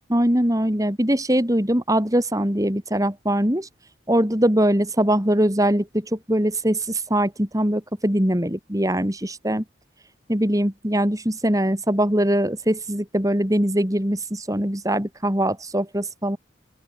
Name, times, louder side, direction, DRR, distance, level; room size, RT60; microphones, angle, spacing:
voice 1, 0.1-3.7 4.1-9.6 10.3-16.4, right 1 dB, 20° right, 4.1 m, -22 dB
open air
head